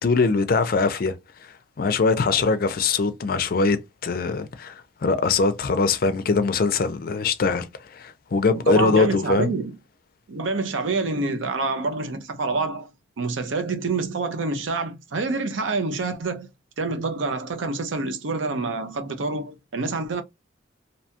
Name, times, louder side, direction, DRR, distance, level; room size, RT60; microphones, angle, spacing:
voice 1, 0.0-1.2 1.4-9.5, left 4 dB, 50° left, 0.4 m, -22 dB
voice 2, 8.6-9.8 10.3-12.9 13.2-16.5 16.8-20.2, right 3 dB, 90° right, 0.5 m, -27 dB
2.7 x 2.2 x 2.7 m
head